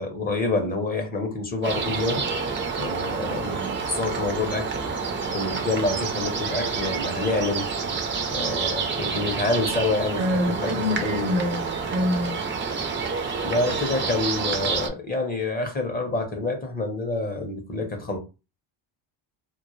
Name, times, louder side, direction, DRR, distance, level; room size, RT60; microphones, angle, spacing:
voice 1, 0.0-2.3 2.8-4.7 5.3-7.7 8.3-11.3 13.4-18.2, left 2 dB, 20° left, 0.6 m, -27 dB
Morning-Drizzle, 1.6-14.9, right 5 dB, 25° right, 0.4 m, -28 dB
voice 2, 10.2-12.4, left 1 dB, 90° right, 0.8 m, -26 dB
2.2 x 2.1 x 3.0 m
cardioid pair, 100°, 50 cm